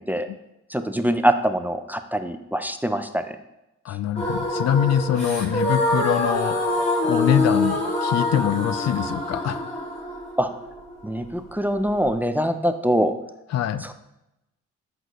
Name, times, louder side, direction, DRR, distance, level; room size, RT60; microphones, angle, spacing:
voice 1, 0.7-3.4 10.4-10.5 11.0-13.1 13.8-13.9, equal, 5° right, 9 dB, 0.4 m, -23 dB
voice 2, 3.8-9.6 13.5-13.8, left 10 dB, 60° left, 14 dB, 0.5 m, -24 dB
sound 1, 4.2-12.1, left 2 dB, 20° left, 2.1 m, -25 dB
7.8 x 6.2 x 3.0 m, 0.91 s
cardioid pair, 90°, 30 cm